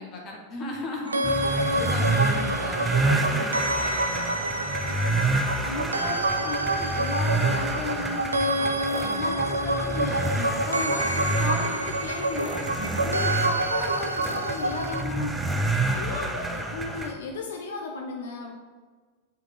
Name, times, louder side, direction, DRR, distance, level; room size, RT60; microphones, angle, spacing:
voice 1, 0.0-3.6 9.0-9.3 12.8-13.1, left 2 dB, 30° left, -1 dB, 1.3 m, -37 dB
sound 1, 1.1-15.0, right 1 dB, 80° right, 0.4 m, -28 dB
sound 2, 1.2-17.1, right 2 dB, 10° right, 0.6 m, -28 dB
voice 2, 5.6-8.7 9.2-12.7 13.0-15.6 15.8-18.5, left 4 dB, 60° left, 2 dB, 0.6 m, -35 dB
6.5 x 4.7 x 3.8 m, 1.5 s
figure-of-eight pair, 90°, 0 cm